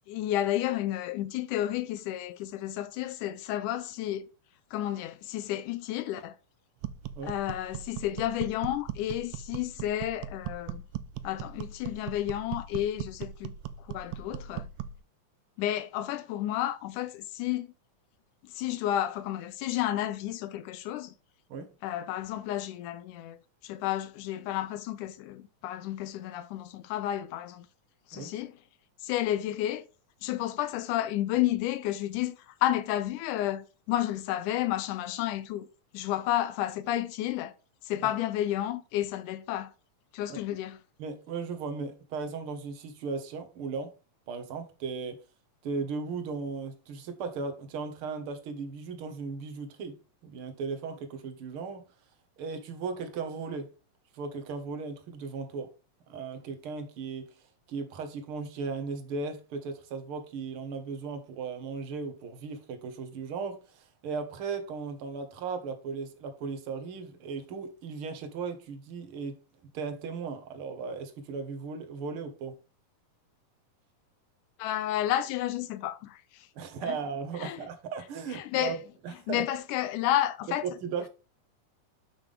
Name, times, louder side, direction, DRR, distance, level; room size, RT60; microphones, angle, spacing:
voice 1, 0.1-4.3 4.7-6.4 7.2-10.8 11.2-13.5 13.9-14.7 15.6-17.7 18.4-21.1 21.8-23.4 23.6-27.7 28.1-28.6 29.0-29.9 30.2-35.7 35.9-37.5 37.9-39.7 40.1-40.8 74.6-76.2 76.9-77.0 77.4-77.6 78.3-78.8 79.3-80.7, left 13 dB, 85° left, 2.2 m, -31 dB
sound 1, 6.8-15.0, right 10 dB, 80° right, 1.6 m, -39 dB
voice 2, 41.0-43.9 44.3-45.2 45.6-50.0 50.2-51.8 52.4-53.7 54.1-55.7 56.1-57.3 57.7-69.4 69.7-72.6 76.6-78.8 79.0-79.4 80.6-81.1, right 5 dB, 55° right, 1.8 m, -36 dB
7.3 x 5.8 x 3.4 m
omnidirectional pair, 3.6 m